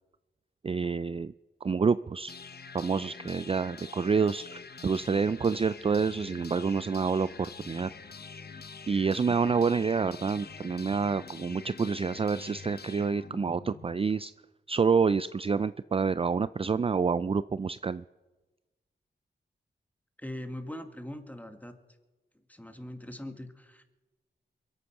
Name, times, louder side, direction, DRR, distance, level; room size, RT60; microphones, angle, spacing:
voice 1, 0.6-1.3 1.6-2.3 2.7-7.9 8.9-14.3 14.7-18.0, right 5 dB, 30° right, 16 dB, 0.4 m, -28 dB
sound 1, 2.3-14.2, left 5 dB, 55° left, 1.1 m, -46 dB
voice 2, 20.2-21.7 22.5-23.8, left 1 dB, 10° left, 7 dB, 2.0 m, -41 dB
23.0 x 8.4 x 5.9 m, 1.1 s
cardioid pair, 45°, 19 cm